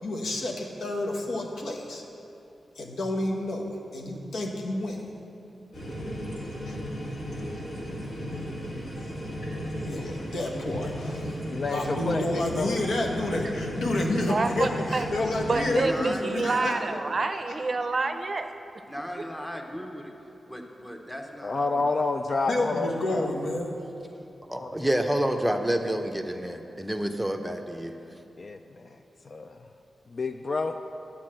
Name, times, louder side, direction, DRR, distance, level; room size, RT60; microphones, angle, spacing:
voice 1, 0.0-2.0 2.8-3.7 3.9-5.0 6.7-6.8 9.9-11.3 11.7-17.0 22.5-23.7, left 1 dB, 85° left, -1 dB, 1.0 m, -29 dB
sound 1, 5.7-15.8, equal, 70° left, 2.1 m, -35 dB
voice 2, 9.9-10.3 11.5-12.8 13.2-13.3 21.4-23.3 24.6-24.7 28.4-28.6 29.3-29.5 30.1-30.8, left 3 dB, 50° left, 6 dB, 0.3 m, -29 dB
voice 3, 14.3-15.1 15.5-18.5, right 3 dB, 50° right, 7 dB, 0.5 m, -28 dB
voice 4, 15.8-17.2 18.9-20.1 20.5-21.9 22.9-23.3, equal, 10° left, 2 dB, 1.0 m, -38 dB
voice 5, 24.5-27.9, right 1 dB, 5° right, 5 dB, 0.6 m, -28 dB
9.4 x 4.4 x 7.5 m, 2.8 s
cardioid pair, 60°, 0 cm